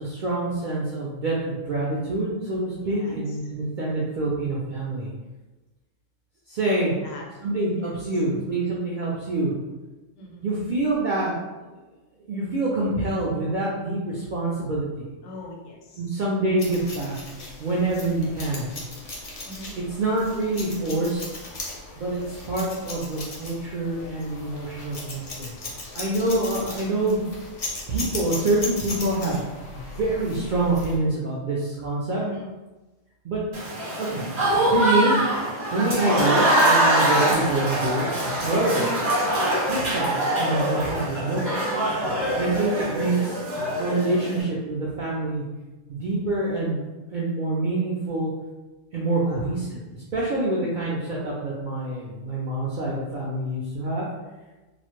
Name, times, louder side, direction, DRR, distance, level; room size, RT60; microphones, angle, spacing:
voice 1, 0.0-5.1 6.5-6.9 7.4-9.5 10.4-11.3 12.3-15.1 16.0-17.2 17.6-18.7 20.0-21.3 22.0-22.2 22.5-25.5 25.9-27.2 27.9-29.4 29.7-32.2 33.2-33.4 34.0-34.2 34.7-35.2 35.7-38.1 38.4-38.9 39.4-41.5 42.4-45.4 45.9-48.3 48.9-49.8 50.1-54.1, right 2 dB, 70° right, -6 dB, 0.4 m, -26 dB
voice 2, 2.8-3.1 4.1-4.2 6.7-7.2 7.8-7.9 10.2-10.4 15.2-16.1 19.4-19.7 32.2-32.5 38.7-39.1 49.1-49.5, equal, 85° left, -1 dB, 1.0 m, -40 dB
sound 1, 16.6-31.0, left 2 dB, 50° left, 0.4 m, -37 dB
Applause / Crowd, 33.5-44.4, right 1 dB, 45° right, 0.9 m, -23 dB
2.4 x 2.0 x 2.9 m, 1.1 s
omnidirectional pair, 1.3 m